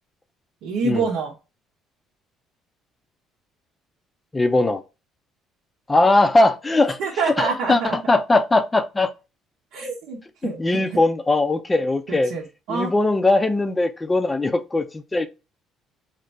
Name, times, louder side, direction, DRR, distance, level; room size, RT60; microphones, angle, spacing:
voice 1, 0.6-1.3 7.0-8.0 9.7-11.0 12.1-12.9, right 4 dB, 80° right, 0.9 m, -27 dB
voice 2, 4.3-4.8 5.9-7.0 7.3-9.1 10.4-12.3 12.7-15.3, left 2 dB, 15° left, 0.4 m, -20 dB
2.7 x 2.6 x 3.3 m
cardioid pair, 110°, 0 cm